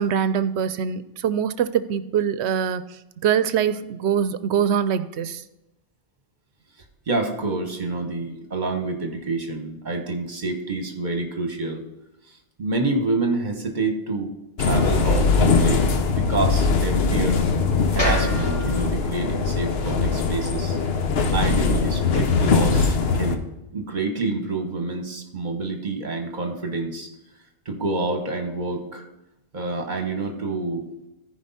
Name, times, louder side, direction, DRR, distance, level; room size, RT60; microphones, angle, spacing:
voice 1, 0.0-2.8 3.2-5.4, right 8 dB, 80° right, 13 dB, 0.9 m, -23 dB
voice 2, 7.1-11.8 12.6-14.3 14.6-15.9 16.1-17.4 17.9-20.8 21.3-23.4 23.7-27.1 27.6-29.1 29.5-30.9, right 3 dB, 45° right, 5 dB, 1.4 m, -27 dB
sound 1, 14.6-23.4, left 4 dB, 65° left, 1.0 m, -21 dB
sound 2, 18.0-22.1, equal, 85° left, 3.4 m, -33 dB
14.5 x 5.1 x 4.1 m, 0.93 s
omnidirectional pair, 1.2 m